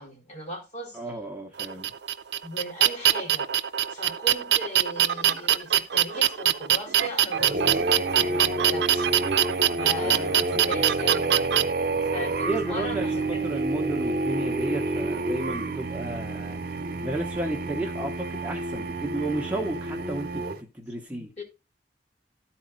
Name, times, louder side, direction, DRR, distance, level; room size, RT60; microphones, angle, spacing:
voice 1, 0.0-1.0 2.4-3.5 3.9-9.1 9.8-11.4 12.1-13.4 21.2-21.4, equal, 40° left, 2.4 m, -37 dB
voice 2, 0.9-1.9 10.0-10.9 12.5-21.3, right 2 dB, 10° right, 1.0 m, -33 dB
sound 1, 1.6-11.6, right 11 dB, 70° right, 0.5 m, -23 dB
sound 2, 7.3-20.6, right 2 dB, 55° right, 1.1 m, -29 dB
12.5 x 4.2 x 3.9 m
head